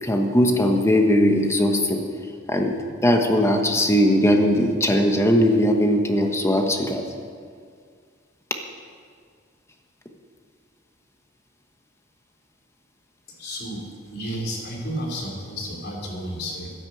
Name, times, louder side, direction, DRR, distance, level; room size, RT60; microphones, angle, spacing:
voice 1, 0.0-2.0 2.5-2.7 3.0-7.0, equal, 15° left, 3 dB, 1.1 m, -19 dB
voice 2, 13.4-16.7, equal, 55° left, -1 dB, 3.2 m, -32 dB
12.0 x 10.5 x 7.7 m, 2.1 s
head